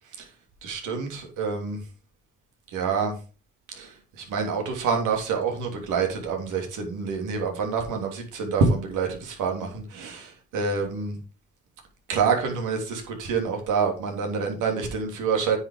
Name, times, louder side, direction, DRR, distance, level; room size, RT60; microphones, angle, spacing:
voice 1, 0.6-1.8 2.7-3.2 3.7-11.2 12.1-15.6, right 5 dB, 85° right, 3.1 m, -27 dB
9.7 x 5.8 x 5.0 m
cardioid pair, 90°, 30 cm